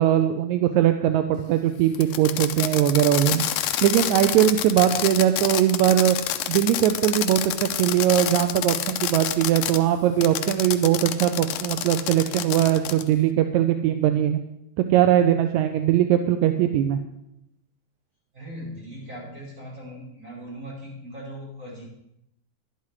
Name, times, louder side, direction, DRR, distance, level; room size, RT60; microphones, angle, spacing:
voice 1, 0.0-3.4 3.8-6.2 6.5-14.4 14.8-17.0, right 11 dB, 80° right, 7 dB, 1.9 m, -20 dB
Fireworks, 1.9-9.8 10.2-13.1, left 12 dB, 85° left, 2.1 m, -28 dB
voice 2, 18.3-21.8, equal, 25° right, -7 dB, 6.1 m, -39 dB
11.5 x 11.0 x 4.8 m, 0.81 s
omnidirectional pair, 3.5 m